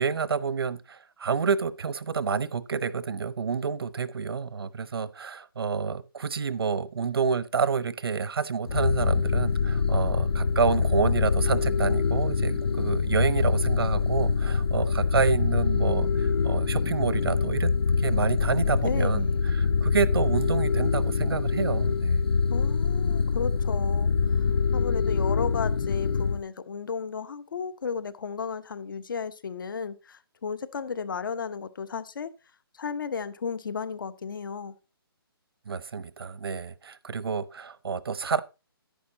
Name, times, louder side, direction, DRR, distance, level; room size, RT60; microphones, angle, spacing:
voice 1, 0.0-17.7 18.0-22.2 35.7-38.4, right 5 dB, 70° right, 0.8 m, -28 dB
sound 1, 8.7-26.4, left 5 dB, 80° left, 0.6 m, -25 dB
voice 2, 18.8-19.4 22.5-24.1 24.7-32.3 32.7-34.7, left 6 dB, 55° left, 0.9 m, -34 dB
10.0 x 9.8 x 2.8 m
hypercardioid pair, 170°, 13 cm